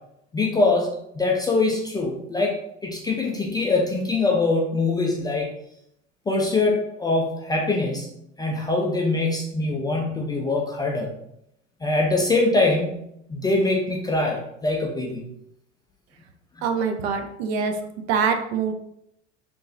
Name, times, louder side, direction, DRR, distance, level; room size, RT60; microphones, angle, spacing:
voice 1, 0.3-2.6 2.8-5.5 6.3-8.1 8.4-11.1 11.8-13.0 13.3-15.2, left 3 dB, 10° left, 0 dB, 0.3 m, -23 dB
voice 2, 16.6-17.8 18.1-18.7, right 6 dB, 55° right, 7 dB, 0.6 m, -24 dB
3.6 x 2.9 x 2.4 m, 0.77 s
figure-of-eight pair, 75°, 37 cm